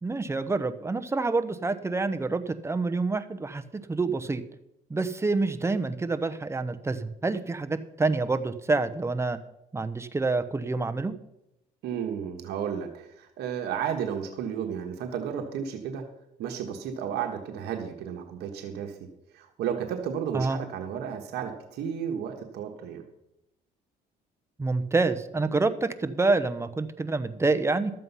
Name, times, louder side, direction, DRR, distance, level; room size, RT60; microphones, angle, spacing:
voice 1, 0.0-4.4 4.9-9.4 9.7-11.2 20.3-20.6 24.6-27.9, right 3 dB, 15° right, 10 dB, 0.8 m, -27 dB
voice 2, 11.8-16.0 16.4-19.1 19.3-23.0, right 8 dB, 75° right, 4 dB, 1.3 m, -33 dB
12.5 x 7.7 x 5.5 m, 0.85 s
cardioid pair, 110°, 17 cm